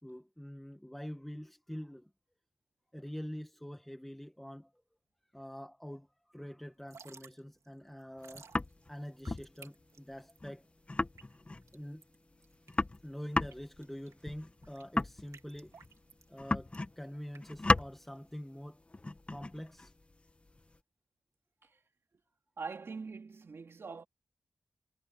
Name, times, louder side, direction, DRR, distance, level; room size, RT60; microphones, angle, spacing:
voice 1, 0.0-2.1 2.9-4.7 5.3-8.5 8.9-10.6 11.7-12.1 13.0-15.7 16.3-18.8 19.3-19.9, equal, 5° left, 1.5 m, -45 dB
Drip / Trickle dribble, 6.7-18.3, right 5 dB, 75° right, 3.0 m, -59 dB
sound 1, 8.2-8.9 9.3-9.5 9.8-9.9 10.1-10.2 10.4-10.5 10.9-11.7 12.1-12.2 12.4-16.0 16.4-17.1 17.3-18.0 18.9-20.8, left 2 dB, 25° left, 1.2 m, -34 dB
voice 2, 22.6-24.1, right 4 dB, 55° right, 2.9 m, -43 dB
wide cardioid pair, 130°, 5 cm